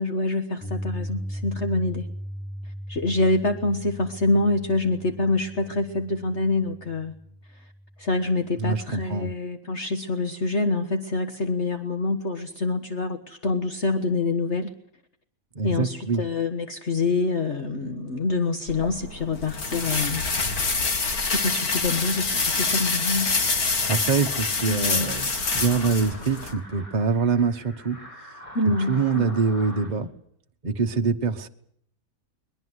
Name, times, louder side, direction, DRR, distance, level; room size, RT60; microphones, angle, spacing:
voice 1, 0.0-2.1 2.6-7.1 7.6-7.7 8.0-14.7 15.6-20.2 21.3-23.3 24.7-25.2 28.6-29.4, left 2 dB, 50° left, 7 dB, 1.7 m, -26 dB
Piano, 0.6-8.7, equal, 5° right, 1.8 m, -37 dB
voice 2, 8.6-9.3 15.5-16.2 23.8-28.1 28.6-30.1 30.6-31.5, right 5 dB, 30° right, 5 dB, 1.2 m, -25 dB
sound 1, 18.7-26.5, left 4 dB, 75° left, 2.9 m, -26 dB
sound 2, 23.5-29.9, equal, 20° left, 6.8 m, -45 dB
22.5 x 21.5 x 8.1 m, 0.69 s
omnidirectional pair, 1.6 m